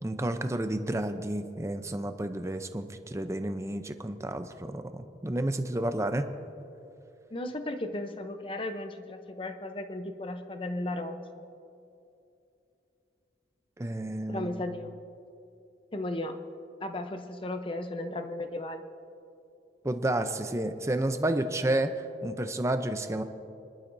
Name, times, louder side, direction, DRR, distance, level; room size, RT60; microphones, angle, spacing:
voice 1, 0.0-6.3 13.8-14.6 19.8-23.2, right 1 dB, 15° right, 8 dB, 0.6 m, -31 dB
voice 2, 7.3-11.4 14.3-15.0 15.9-16.4 16.8-18.8, left 1 dB, 30° left, 7 dB, 0.7 m, -35 dB
23.5 x 11.5 x 2.7 m, 2.7 s
head